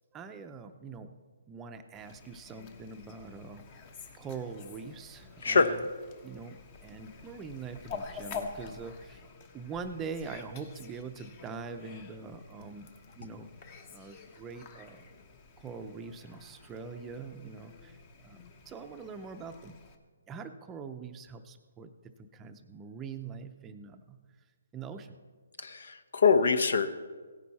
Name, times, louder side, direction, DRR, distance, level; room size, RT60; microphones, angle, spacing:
voice 1, 0.1-1.1 1.5-3.7 4.2-5.8 6.2-9.2 9.5-13.5 13.9-15.1 15.6-18.4 18.7-19.8 20.3-24.2 24.7-25.2, right 5 dB, 15° right, 7 dB, 0.6 m, -43 dB
Fowl, 1.9-19.9, left 5 dB, 30° left, 1.1 m, -48 dB
voice 2, 5.4-5.7 25.6-26.9, left 5 dB, 70° left, 11 dB, 1.0 m, -24 dB
16.5 x 10.0 x 4.2 m, 1.5 s
hypercardioid pair, 155°, 0 cm